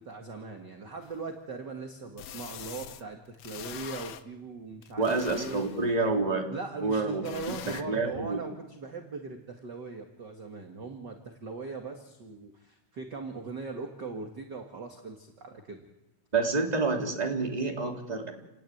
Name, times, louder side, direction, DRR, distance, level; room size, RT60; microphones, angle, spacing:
voice 1, 0.0-5.6 6.5-15.9, right 4 dB, 35° right, 3 dB, 2.0 m, -40 dB
sound 1, 1.0-1.1 2.2-3.0 3.4-4.2 4.8-6.0 7.2-7.8, left 10 dB, 70° left, 1.6 m, -43 dB
voice 2, 5.0-6.5 6.8-8.4 16.3-18.3, right 3 dB, 10° right, 2 dB, 2.8 m, -28 dB
29.5 x 18.5 x 9.4 m, 1.0 s
omnidirectional pair, 4.3 m